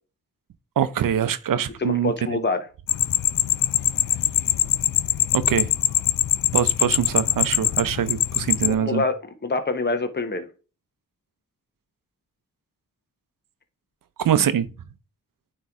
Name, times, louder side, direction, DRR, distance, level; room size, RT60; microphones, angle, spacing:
voice 1, 0.8-2.4 5.3-5.7 6.5-9.0 14.2-14.7, right 9 dB, 70° right, 0.7 m, -23 dB
voice 2, 1.8-2.6 8.6-10.5, left 3 dB, 30° left, 1.1 m, -26 dB
sound 1, 2.9-8.7, left 11 dB, 70° left, 0.5 m, -22 dB
9.2 x 3.1 x 3.6 m
cardioid pair, 45°, 34 cm